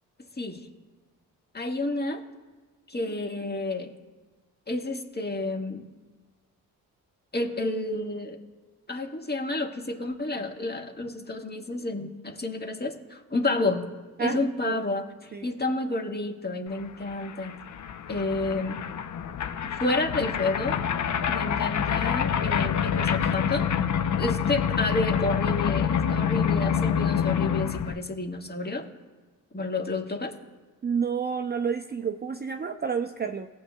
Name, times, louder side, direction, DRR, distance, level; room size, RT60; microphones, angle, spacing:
voice 1, 1.5-2.2 2.9-3.9 4.7-5.9 7.3-8.4 8.9-13.9 14.2-17.6 18.1-18.8 19.6-20.8 21.3-23.7 24.1-28.9 29.5-30.4, left 2 dB, 25° left, 3 dB, 1.7 m, -30 dB
voice 2, 14.2-14.8 15.3-15.5 30.8-33.5, right 6 dB, 25° right, 4 dB, 0.6 m, -30 dB
sound 1, 16.8-16.9 17.1-27.9, left 8 dB, 45° left, 0.7 m, -27 dB
18.0 x 8.2 x 2.3 m, 1.4 s
hypercardioid pair, 50°, 42 cm